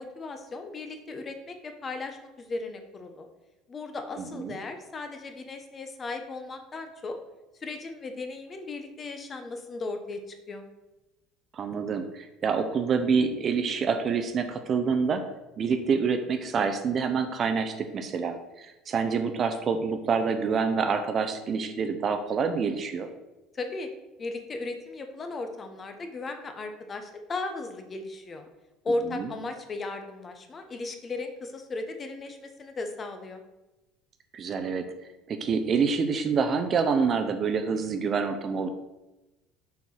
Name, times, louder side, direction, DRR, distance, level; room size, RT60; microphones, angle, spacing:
voice 1, 0.0-3.3 3.7-7.2 7.6-10.6 23.5-23.9 24.2-28.4 28.8-33.4, left 3 dB, 25° left, 6 dB, 0.9 m, -36 dB
voice 2, 11.5-15.2 15.6-23.1 29.1-29.3 34.3-34.9 35.3-38.7, right 5 dB, 30° right, 8 dB, 0.6 m, -27 dB
6.9 x 4.5 x 6.3 m, 1.0 s
cardioid pair, 155°, 0 cm